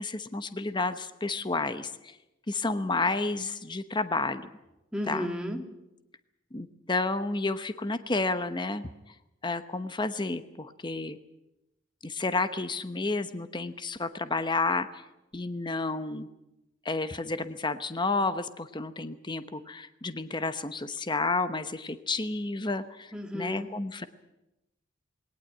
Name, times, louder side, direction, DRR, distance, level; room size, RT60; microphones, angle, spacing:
voice 1, 0.0-2.1 2.5-4.5 5.1-5.3 6.5-8.9 9.4-11.2 12.0-14.9 15.3-16.3 16.8-24.1, left 3 dB, 25° left, 11 dB, 1.0 m, -31 dB
voice 2, 4.9-5.6 23.1-23.7, equal, 5° right, 3 dB, 2.3 m, -33 dB
20.5 x 18.5 x 9.0 m, 0.92 s
head